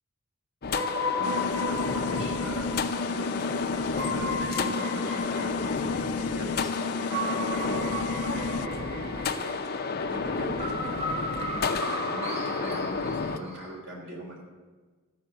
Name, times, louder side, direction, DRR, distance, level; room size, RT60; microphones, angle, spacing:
sound 1, 0.6-13.4, left 4 dB, 45° left, 0.6 m, -31 dB
sound 2, 0.7-13.8, left 1 dB, 30° right, 1.2 m, -35 dB
voice 1, 1.1-2.7 3.0-5.5 6.1-9.5 9.8-14.4, equal, 55° right, -2 dB, 3.5 m, -40 dB
sound 3, 1.2-8.7, left 4 dB, 85° left, 0.4 m, -33 dB
13.5 x 5.5 x 7.3 m, 1.4 s
head